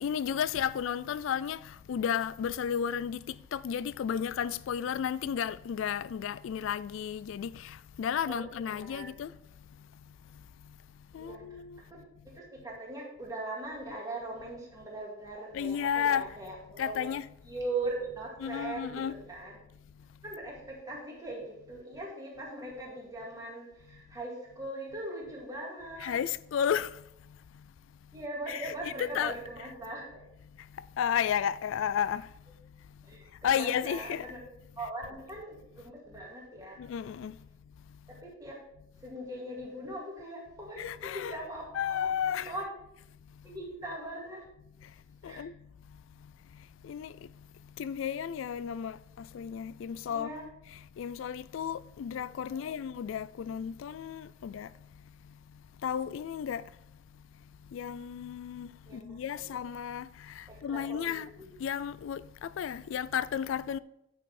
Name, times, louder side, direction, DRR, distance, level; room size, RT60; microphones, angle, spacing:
voice 1, 0.0-1.6 1.9-3.2 3.5-7.5 8.0-9.3 11.1-11.8 15.5-16.3 16.8-17.3 18.4-19.1 26.0-26.9 28.5-29.4 31.0-32.2 33.4-34.3 36.9-37.3 40.8-41.4 41.7-42.5 45.2-45.5 46.9-47.1 47.8-49.0 49.3-50.3 51.0-54.7 55.8-56.6 57.7-60.1 60.6-61.3 61.6-62.2 62.6-63.8, left 8 dB, 75° left, 0.3 m, -32 dB
voice 2, 8.3-9.1 11.1-11.4 11.9-12.0 12.3-17.0 17.5-19.5 20.2-26.1 28.1-30.2 33.1-34.4 34.8-36.8 38.1-38.6 39.0-42.1 42.3-42.7 43.4-44.4 45.2-45.5 50.1-50.4 52.5-52.8 58.9-59.5 60.5-61.5, right 2 dB, 20° right, 2.2 m, -40 dB
9.6 x 5.4 x 4.2 m
head